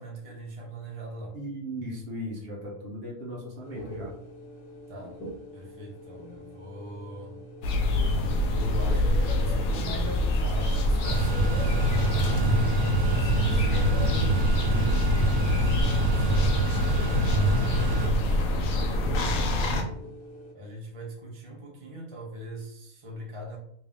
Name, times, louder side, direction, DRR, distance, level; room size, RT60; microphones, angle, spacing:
voice 1, 0.0-1.4 4.9-7.4 8.4-14.7 15.4-18.4 19.2-20.1 20.5-23.6, equal, 30° right, -2 dB, 0.6 m, -41 dB
voice 2, 1.3-4.1 14.7-15.0, equal, 45° right, -3 dB, 1.1 m, -37 dB
sound 1, 3.6-20.5, equal, 50° left, 1.0 m, -45 dB
sound 2, 7.6-19.8, left 1 dB, 80° left, 1.1 m, -25 dB
sound 3, 11.0-18.1, right 2 dB, 65° right, 0.9 m, -26 dB
3.3 x 2.7 x 3.4 m, 0.70 s
omnidirectional pair, 1.5 m